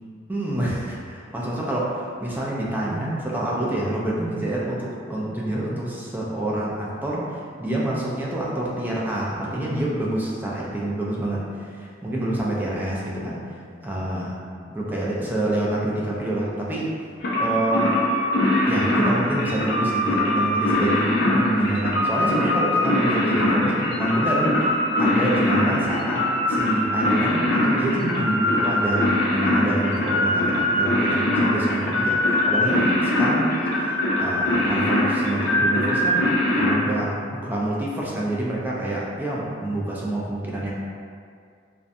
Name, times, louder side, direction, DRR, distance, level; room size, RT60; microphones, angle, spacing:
voice 1, 0.3-13.5 13.8-14.3 14.7-16.9 17.4-18.0 18.7-24.7 25.0-36.3 36.6-40.7, right 1 dB, 10° right, -5 dB, 0.3 m, -27 dB
sound 1, 17.2-36.7, left 1 dB, 60° left, 0.5 m, -22 dB
2.5 x 2.1 x 2.5 m, 2.2 s
head